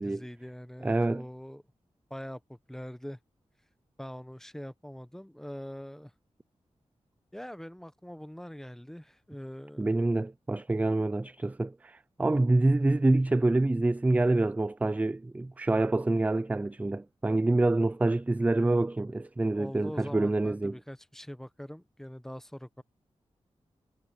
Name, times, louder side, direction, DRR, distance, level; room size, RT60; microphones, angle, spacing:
voice 1, 0.0-1.6 2.1-3.2 4.0-6.1 7.3-10.0 19.5-22.8, equal, 5° left, 0.9 m, -43 dB
voice 2, 0.8-1.2 9.8-20.7, right 2 dB, 15° right, 0.3 m, -26 dB
wide cardioid pair, 90°, 11 cm